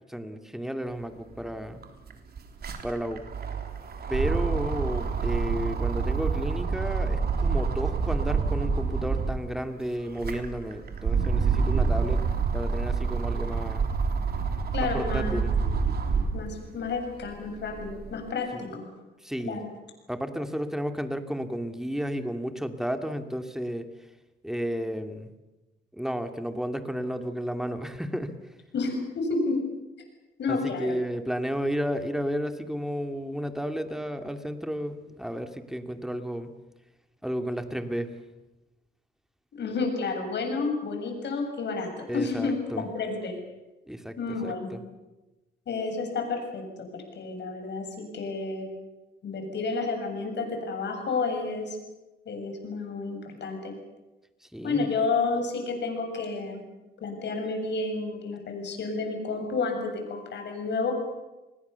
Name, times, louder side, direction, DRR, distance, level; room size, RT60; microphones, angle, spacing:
voice 1, 0.1-1.8 2.8-3.2 4.1-12.2 12.5-13.9 14.8-15.5 18.5-18.8 19.2-19.6 20.1-23.9 24.4-25.3 25.9-28.4 30.5-36.5 37.2-38.1 42.1-42.8 43.9-44.8 54.5-54.9, equal, ahead, 7 dB, 2.5 m, -32 dB
sound 1, 1.3-1.4 1.7-9.5 10.0-16.5 17.0-18.1, right 5 dB, 50° right, 3.6 m, -27 dB
voice 2, 14.7-15.7 16.3-18.8 19.4-19.6 28.7-29.6 30.4-31.0 39.5-43.4 44.2-44.8 45.7-48.7 49.2-51.8 52.3-53.7 54.6-56.6 57.0-60.9, left 4 dB, 60° left, 5 dB, 7.4 m, -30 dB
30.0 x 20.5 x 7.0 m, 1.1 s
cardioid pair, 90°, 20 cm